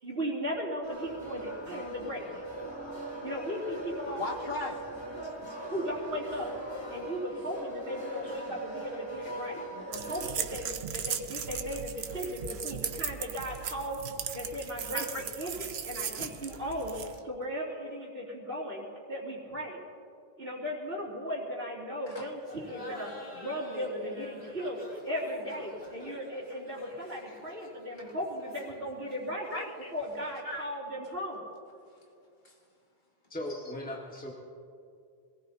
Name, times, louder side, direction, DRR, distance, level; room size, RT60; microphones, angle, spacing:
voice 1, 0.0-2.4 3.2-4.2 5.7-6.5 6.9-9.6 9.9-14.0 14.3-15.0 15.4-17.0 17.2-19.8 20.4-29.5 29.9-31.4, equal, 65° right, -11 dB, 3.4 m, -37 dB
sound 1, 0.8-10.3, right 1 dB, 25° left, 2.7 m, -40 dB
voice 2, 4.2-4.9 5.2-5.7 8.2-8.3 14.9-15.3 15.5-15.6 22.1-22.3 29.5-29.9 30.4-30.6 32.4-32.5, left 2 dB, 50° left, 1 dB, 1.9 m, -38 dB
sound 2, 9.9-17.2, right 7 dB, 80° right, 1.0 m, -37 dB
Laughter, 22.4-29.9, left 1 dB, 90° left, 3.0 m, -48 dB
voice 3, 33.3-34.3, left 1 dB, 10° left, -4 dB, 1.9 m, -38 dB
25.5 x 19.0 x 2.9 m, 2.5 s
omnidirectional pair, 1.1 m